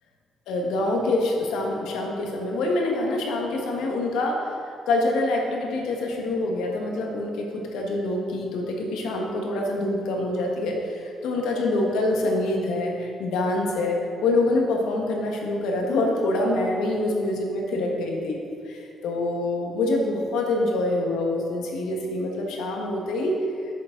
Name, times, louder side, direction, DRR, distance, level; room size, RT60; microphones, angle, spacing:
voice 1, 0.5-18.4 18.6-23.4, left 2 dB, 90° left, 0 dB, 1.6 m, -25 dB
11.0 x 7.4 x 4.0 m, 2.4 s
cardioid pair, 90°, 0 cm